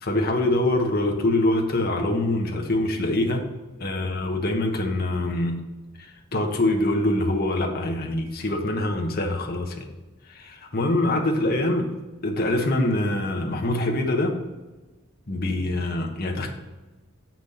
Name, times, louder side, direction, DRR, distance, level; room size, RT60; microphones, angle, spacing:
voice 1, 0.0-3.4 3.8-5.6 6.0-9.9 10.3-11.9 12.2-14.3 15.3-16.5, left 1 dB, 45° left, 2 dB, 1.1 m, -24 dB
7.0 x 6.0 x 4.3 m, 1.2 s
head